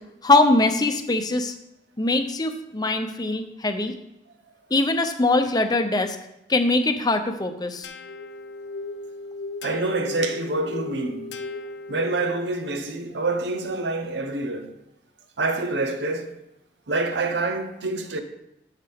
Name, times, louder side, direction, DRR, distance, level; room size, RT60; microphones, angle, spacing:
voice 1, 0.2-1.5 2.0-3.9 4.7-6.2 6.5-7.9, left 2 dB, 25° left, 0.6 m, -22 dB
sound 1, 7.8-12.6, left 2 dB, 80° left, 0.6 m, -36 dB
voice 2, 9.6-11.3 11.9-14.7 15.4-16.3 16.9-18.2, right 2 dB, 80° right, 0.9 m, -26 dB
12.0 x 5.8 x 3.6 m
head